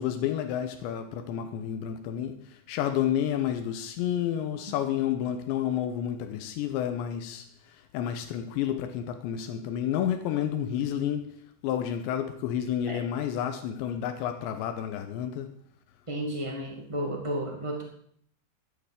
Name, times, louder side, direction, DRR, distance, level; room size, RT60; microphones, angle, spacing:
voice 1, 0.0-11.3 11.6-15.5, left 10 dB, 85° left, 3.2 m, -30 dB
voice 2, 16.1-17.8, right 1 dB, 25° right, 0.7 m, -32 dB
12.5 x 9.1 x 8.1 m
omnidirectional pair, 5.1 m